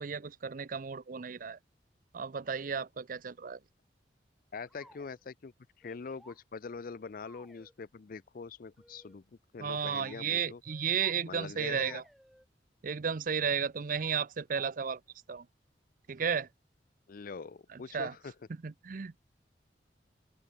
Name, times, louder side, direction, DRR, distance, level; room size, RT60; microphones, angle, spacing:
voice 1, 0.0-1.6 2.1-3.6 9.6-12.0 12.8-15.0 15.3-15.5 16.1-16.5 17.7-18.1 18.6-19.2, right 6 dB, 50° right, 0.5 m, -33 dB
voice 2, 4.5-9.2 9.5-10.6 11.3-12.0 17.1-18.3, left 5 dB, 55° left, 0.5 m, -43 dB
sound 1, 4.7-5.2 5.8-6.4 7.2-7.8 8.8-9.2 9.7-10.2 10.6-11.2 11.6-12.5, equal, ahead, 6.5 m, -60 dB
open air
head